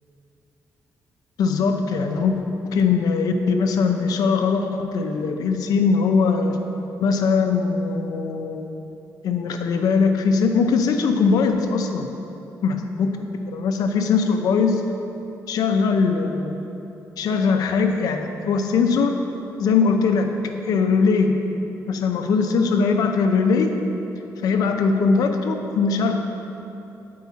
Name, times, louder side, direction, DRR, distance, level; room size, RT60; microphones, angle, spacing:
voice 1, 1.4-2.3 2.6-6.6 7.0-8.7 9.2-12.1 12.6-14.8 15.5-16.6 17.2-19.2 19.6-20.4 20.6-21.5 21.9-23.8 24.4-26.2, left 5 dB, 80° left, 5 dB, 0.6 m, -21 dB
8.4 x 4.7 x 4.1 m, 2.9 s
cardioid pair, 110°, 6 cm